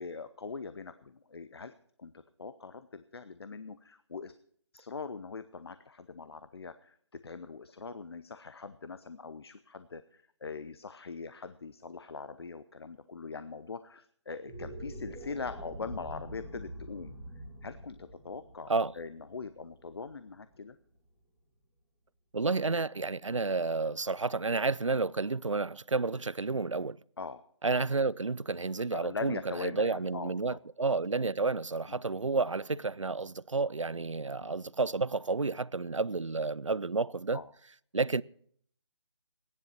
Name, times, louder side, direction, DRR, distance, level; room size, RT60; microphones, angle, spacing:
voice 1, 0.0-4.3 4.7-17.1 17.6-20.8 27.2-27.4 28.9-30.6 31.9-32.0 34.4-34.5 37.3-37.5, left 4 dB, 55° left, 0.8 m, -42 dB
sound 1, 14.4-20.7, right 1 dB, 5° right, 2.0 m, -46 dB
voice 2, 22.3-27.0 27.6-37.4 37.9-38.2, right 3 dB, 90° right, 0.5 m, -31 dB
17.0 x 10.5 x 5.9 m
figure-of-eight pair, 150°, 16 cm